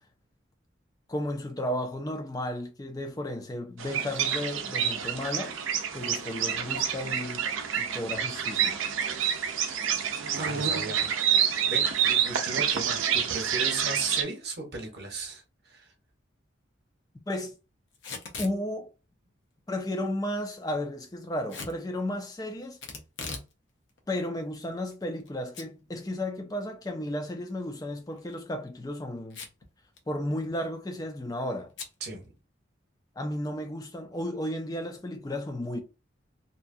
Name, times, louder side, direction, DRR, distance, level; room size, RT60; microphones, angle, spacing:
voice 1, 1.1-5.6 5.9-7.4 7.7-8.8 17.3-17.5 18.4-18.9 19.7-22.8 24.1-29.4 30.1-31.7 33.2-35.8, left 1 dB, 20° left, 0.4 m, -33 dB
sound 1, 3.8-14.2, right 8 dB, 85° right, 0.5 m, -28 dB
voice 2, 10.3-15.9 32.0-32.3, right 3 dB, 55° right, 0.9 m, -36 dB
Packing tape duct tape / Tearing, 17.9-18.6 21.5-21.8 22.8-23.5 23.9-24.0 24.7-25.3 25.5-25.7 26.1-26.2 28.1-28.4 29.3-29.7 30.0-30.1 30.3-30.7 31.8-31.9, left 4 dB, 70° left, 0.6 m, -39 dB
2.8 x 2.2 x 2.5 m
head